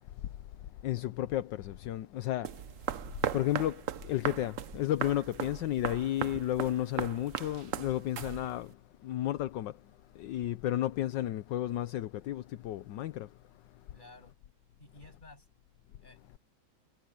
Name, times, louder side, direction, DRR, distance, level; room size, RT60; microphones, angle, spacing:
voice 1, 0.8-2.5 3.3-8.7 9.0-9.7 10.1-13.3, left 13 dB, 70° left, 1.3 m, -32 dB
sound 1, 2.4-8.7, right 9 dB, 65° right, 0.8 m, -38 dB
voice 2, 13.9-14.4 14.8-15.5 16.0-16.4, left 2 dB, 20° left, 7.9 m, -54 dB
omnidirectional pair, 2.3 m